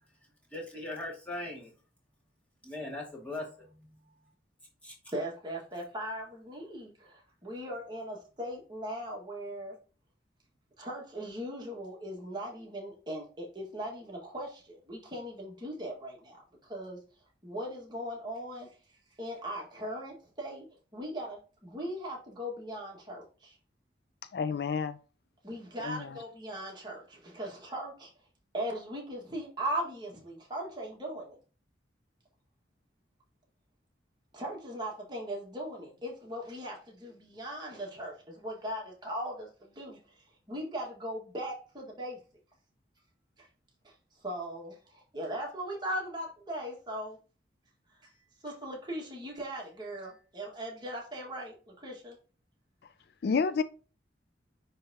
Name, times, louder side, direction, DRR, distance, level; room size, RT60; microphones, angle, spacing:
voice 1, 0.5-1.7 2.6-3.9 4.8-4.9, left 2 dB, 10° left, 2.1 m, -39 dB
voice 2, 5.1-9.8 10.8-17.0 17.4-18.7 19.2-20.7 20.9-23.5 25.4-28.1 28.5-31.4 34.3-40.0 40.5-42.2 43.4-43.5 43.8-43.9 44.2-47.2 48.4-52.2, equal, 25° right, 1.7 m, -39 dB
voice 3, 24.3-25.0 25.8-26.2 53.2-53.6, left 5 dB, 55° left, 0.3 m, -29 dB
10.0 x 3.4 x 2.9 m
head